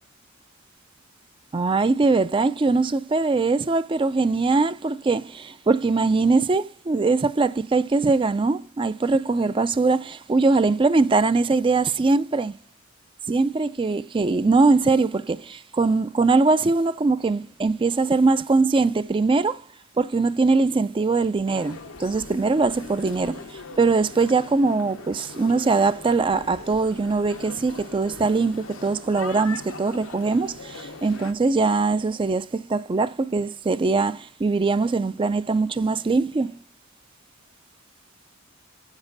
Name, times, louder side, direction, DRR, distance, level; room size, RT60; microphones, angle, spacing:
voice 1, 1.5-12.5 13.3-19.6 20.0-36.6, right 3 dB, 25° right, 0.4 m, -22 dB
sound 1, 21.5-31.3, left 4 dB, 80° left, 0.9 m, -41 dB
8.8 x 7.3 x 3.9 m
head